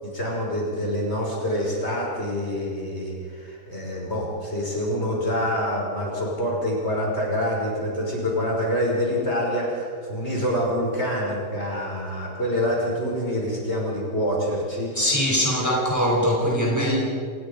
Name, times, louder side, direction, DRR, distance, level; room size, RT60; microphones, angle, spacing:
voice 1, 0.0-15.1 16.5-17.0, equal, 40° left, -2 dB, 6.0 m, -26 dB
voice 2, 14.9-17.0, equal, 10° right, -2 dB, 4.7 m, -22 dB
27.0 x 21.0 x 5.3 m, 2.3 s
omnidirectional pair, 1.8 m